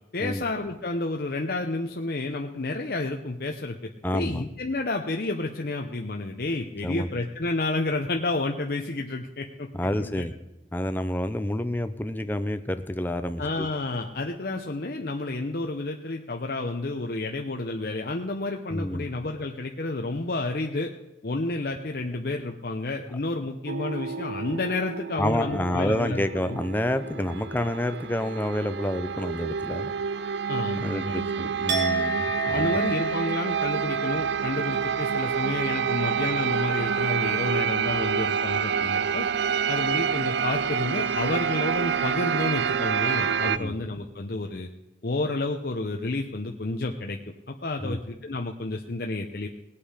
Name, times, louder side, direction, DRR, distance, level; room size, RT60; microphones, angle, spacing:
voice 1, 0.1-3.8 4.1-9.7 10.0-10.2 13.4-20.9 21.2-26.6 30.5-31.3 32.5-39.3 39.7-44.7 45.0-47.2 47.5-49.5, left 2 dB, 55° left, 3 dB, 0.8 m, -30 dB
voice 2, 4.0-4.4 6.8-7.1 9.7-10.3 10.7-13.7 18.7-19.1 25.2-29.9 30.8-32.7 43.5-43.8 47.8-48.0, left 1 dB, 10° left, 9 dB, 0.6 m, -28 dB
sound 1, 23.7-43.6, right 7 dB, 70° right, 0.4 m, -28 dB
Chink clink, 31.7-37.6 37.9-38.3, right 3 dB, 85° right, 1.9 m, -32 dB
18.5 x 8.5 x 5.0 m, 0.99 s
head